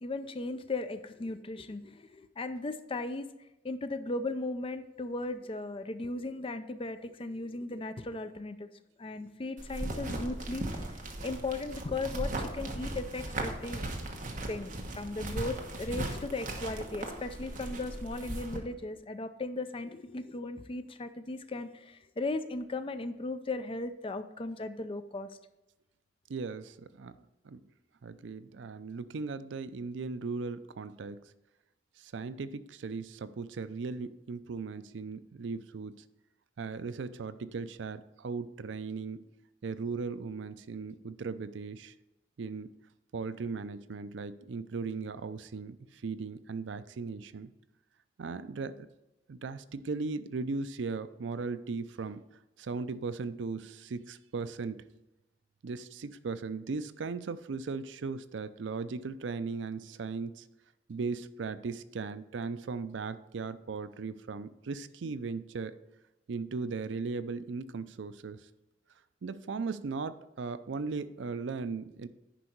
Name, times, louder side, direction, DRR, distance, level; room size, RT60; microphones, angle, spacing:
voice 1, 0.0-3.3 3.6-8.7 9.0-13.9 14.5-25.3, left 2 dB, 30° left, 10 dB, 0.5 m, -37 dB
sound 1, 9.6-18.6, right 2 dB, 45° right, 1.2 m, -38 dB
voice 2, 26.3-27.2 27.4-27.6 28.0-31.2 32.0-36.0 36.6-39.2 39.6-41.9 42.4-42.7 43.1-47.5 48.2-48.9 49.3-52.2 52.6-54.8 55.6-60.4 60.9-65.8 66.3-68.5 69.2-72.1, right 4 dB, 75° right, 14 dB, 0.4 m, -37 dB
10.0 x 5.2 x 4.5 m, 0.97 s
head